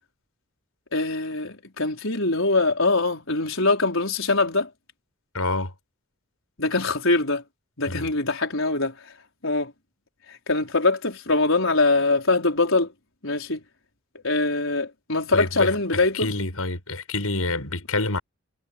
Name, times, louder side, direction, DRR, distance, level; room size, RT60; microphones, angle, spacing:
voice 1, 0.9-4.7 6.6-7.4 7.8-9.1 9.4-9.7 10.3-12.9 13.2-13.6 14.2-16.3, left 3 dB, 65° left, 5.0 m, -23 dB
voice 2, 5.3-5.7 7.9-8.1 15.3-18.2, left 2 dB, 90° left, 7.4 m, -27 dB
head